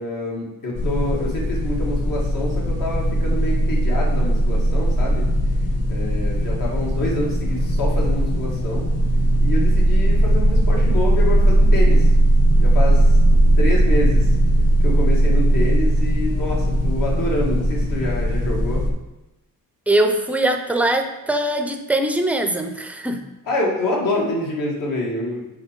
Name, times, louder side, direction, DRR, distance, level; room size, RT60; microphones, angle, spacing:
voice 1, 0.0-5.3 5.9-8.9 9.4-12.1 12.6-13.0 13.6-14.3 14.8-18.9 23.4-25.5, left 1 dB, 65° left, -3 dB, 2.0 m, -26 dB
sound 1, 0.8-18.9, right 1 dB, 45° left, 0.9 m, -18 dB
voice 2, 19.9-23.3, right 1 dB, 5° right, 5 dB, 0.4 m, -21 dB
6.3 x 4.3 x 5.1 m, 0.98 s
wide cardioid pair, 170°, 35 cm